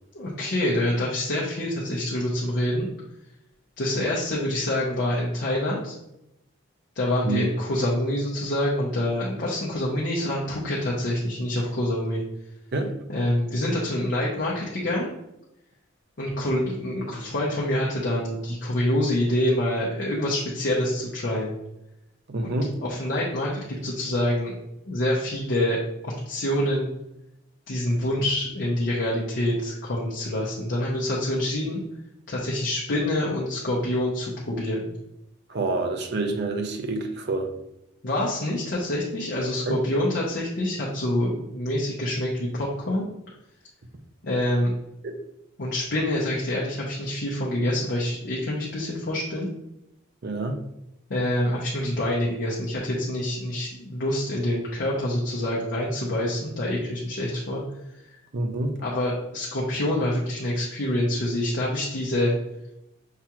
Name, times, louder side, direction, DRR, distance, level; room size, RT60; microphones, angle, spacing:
voice 1, 0.1-2.9 3.8-6.0 6.9-12.2 13.1-15.1 16.2-21.6 22.4-22.6 22.8-24.5 24.8-25.8 26.0-26.9 27.7-31.8 32.3-34.9 38.0-43.1 44.2-44.7 45.6-49.5 51.1-57.6 58.8-62.3, left 1 dB, 55° left, -5 dB, 0.7 m, -26 dB
voice 2, 22.3-22.7 35.5-37.5 39.7-39.8 45.0-45.2 50.2-50.6 58.3-58.8, right 2 dB, 50° right, 5 dB, 0.5 m, -27 dB
5.7 x 2.3 x 2.9 m, 0.86 s
head